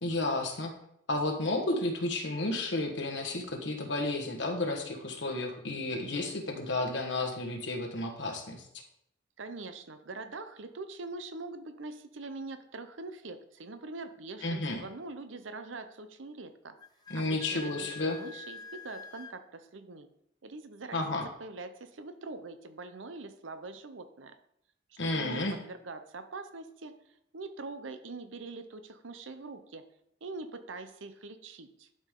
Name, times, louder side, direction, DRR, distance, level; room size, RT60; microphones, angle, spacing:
voice 1, 0.0-0.7 1.1-8.6 14.4-14.8 17.1-18.2 20.9-21.3 25.0-25.5, left 2 dB, 65° left, 3 dB, 1.5 m, -32 dB
voice 2, 9.4-16.8 17.1-20.1 20.4-24.3 24.9-26.9 27.3-29.9 30.2-31.9, right 3 dB, 80° right, 9 dB, 0.8 m, -43 dB
Wind instrument woodwind instrument, 16.8-19.4, left 5 dB, 20° left, 0.7 m, -46 dB
11.5 x 5.2 x 3.8 m, 0.74 s
head